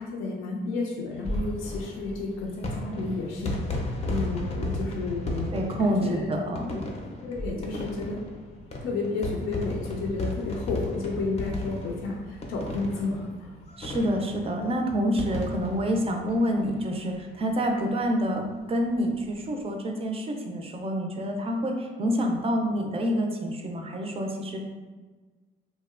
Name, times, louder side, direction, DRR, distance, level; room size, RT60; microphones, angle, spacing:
voice 1, 0.0-6.4 6.6-6.8 7.2-8.2 8.8-13.5, left 3 dB, 90° left, -1 dB, 0.4 m, -32 dB
sound 1, 1.1-17.1 17.5-17.6 17.7-17.8 19.1-19.4, left 2 dB, 30° left, 0.5 m, -35 dB
voice 2, 5.5-6.7 13.8-24.6, equal, 30° right, 3 dB, 0.4 m, -27 dB
2.8 x 2.1 x 2.4 m, 1.3 s
cardioid pair, 90°, 20 cm